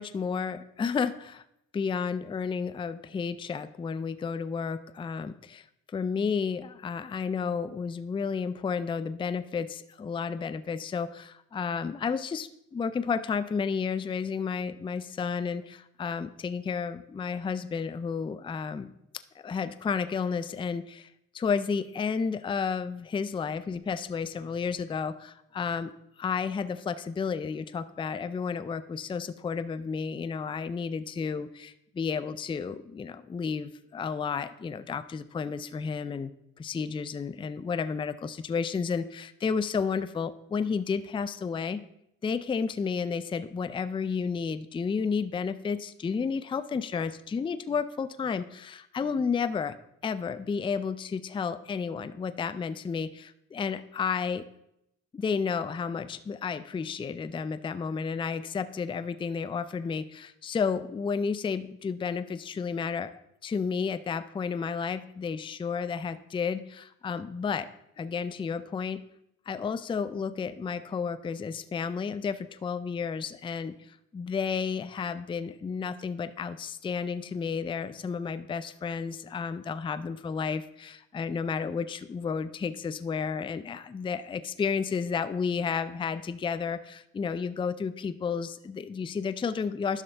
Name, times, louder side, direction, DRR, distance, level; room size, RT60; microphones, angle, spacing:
voice 1, 0.0-1.4 1.7-5.6 5.9-18.9 19.4-21.1 21.3-25.9 26.2-36.3 36.6-41.8 42.2-49.8 50.0-54.5 55.1-63.1 63.4-67.7 68.0-69.0 69.5-90.0, left 5 dB, 15° left, 14 dB, 0.4 m, -32 dB
11.0 x 6.3 x 3.4 m, 0.79 s
cardioid pair, 90°, 30 cm